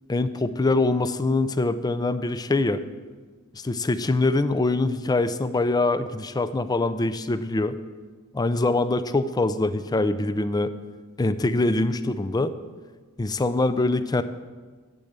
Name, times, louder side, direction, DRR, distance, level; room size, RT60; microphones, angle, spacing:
voice 1, 0.1-2.8 3.5-7.8 8.3-10.7 11.2-12.5 13.2-14.2, left 2 dB, 20° left, 13 dB, 0.4 m, -24 dB
8.4 x 7.0 x 8.0 m, 1.4 s
head